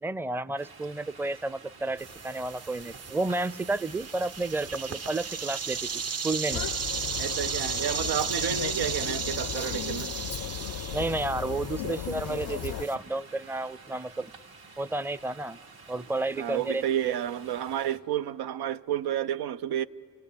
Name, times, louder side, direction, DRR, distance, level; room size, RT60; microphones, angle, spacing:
voice 1, 0.0-5.9 6.2-6.7 10.9-14.3 14.8-15.6 15.9-17.1, right 2 dB, 5° right, 0.5 m, -31 dB
sound 1, 0.6-18.0, right 4 dB, 70° right, 1.9 m, -50 dB
sound 2, 2.0-12.9, right 5 dB, 40° right, 0.7 m, -35 dB
sound 3, 6.5-12.9, left 11 dB, 70° left, 0.5 m, -36 dB
voice 2, 7.2-10.1 16.4-19.8, right 10 dB, 85° right, 0.5 m, -30 dB
29.0 x 18.0 x 8.7 m
supercardioid pair, 40°, 38 cm